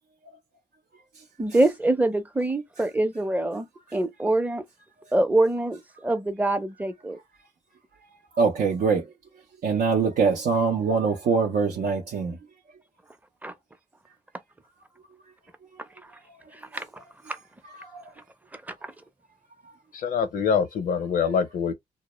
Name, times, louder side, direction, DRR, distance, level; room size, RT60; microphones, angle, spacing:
voice 1, 1.4-4.6 5.1-7.2 13.4-13.5 16.5-16.9 17.3-17.4 18.5-18.9, right 2 dB, 10° right, 0.5 m, -25 dB
voice 2, 8.4-9.0 9.6-12.3 17.8-18.0, right 5 dB, 80° right, 0.5 m, -23 dB
voice 3, 19.9-21.7, left 6 dB, 80° left, 0.6 m, -24 dB
2.1 x 2.0 x 3.0 m
cardioid pair, 70°, 14 cm